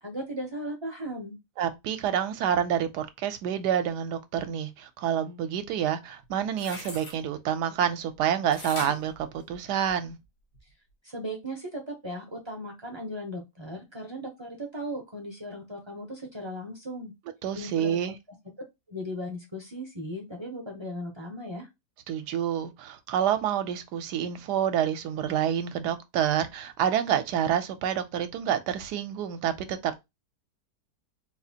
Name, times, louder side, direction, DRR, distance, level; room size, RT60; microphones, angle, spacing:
voice 1, 0.0-1.4 11.0-17.1 17.5-18.0 18.9-21.7, equal, 35° right, 0.4 m, -37 dB
voice 2, 1.6-10.2 17.4-18.1 22.1-30.0, right 9 dB, 80° right, 1.1 m, -28 dB
sound 1, 6.2-7.2 8.5-10.1 10.5-10.6, left 1 dB, 70° left, 1.6 m, -40 dB
4.0 x 2.4 x 2.7 m
omnidirectional pair, 1.8 m